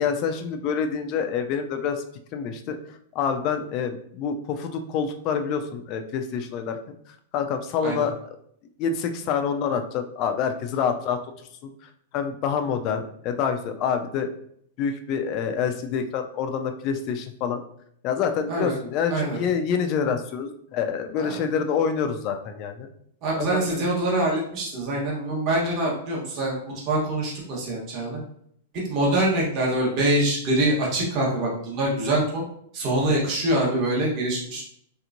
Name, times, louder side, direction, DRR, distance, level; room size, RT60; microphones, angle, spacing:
voice 1, 0.0-2.0 2.3-2.8 3.2-6.8 7.3-8.1 8.8-11.2 11.6-11.7 12.1-14.3 14.8-17.6 18.0-22.9 23.4-23.8, left 6 dB, 30° left, 7 dB, 0.3 m, -27 dB
voice 2, 23.2-28.2 28.9-32.4 32.7-34.6, right 1 dB, 30° right, -3 dB, 1.1 m, -24 dB
3.3 x 2.9 x 2.5 m, 0.67 s
supercardioid pair, 165°, 0 cm